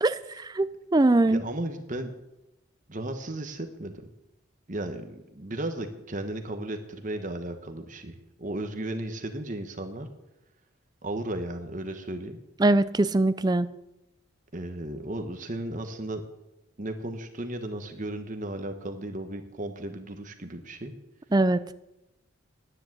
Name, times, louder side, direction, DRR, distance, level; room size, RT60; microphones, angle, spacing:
voice 1, 0.0-1.4 12.6-13.7 21.3-21.6, right 2 dB, 20° right, 14 dB, 0.4 m, -22 dB
voice 2, 1.2-2.1 2.9-4.1 4.7-10.1 11.0-12.4 14.5-16.2 16.8-20.9, right 1 dB, 35° right, 6 dB, 1.1 m, -35 dB
10.0 x 9.8 x 7.9 m, 0.93 s
head